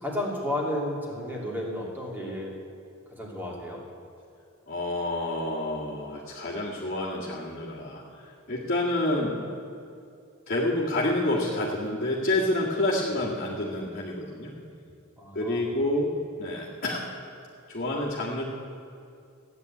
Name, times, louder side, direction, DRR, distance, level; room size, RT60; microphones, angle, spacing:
voice 1, 0.0-2.5 3.2-3.8 15.2-15.7, left 1 dB, 10° right, -3 dB, 2.8 m, -32 dB
voice 2, 4.7-9.4 10.5-14.5 15.3-16.1 16.4-17.0 17.7-18.4, left 1 dB, 45° left, -7 dB, 2.0 m, -28 dB
14.0 x 9.4 x 8.4 m, 2.6 s
head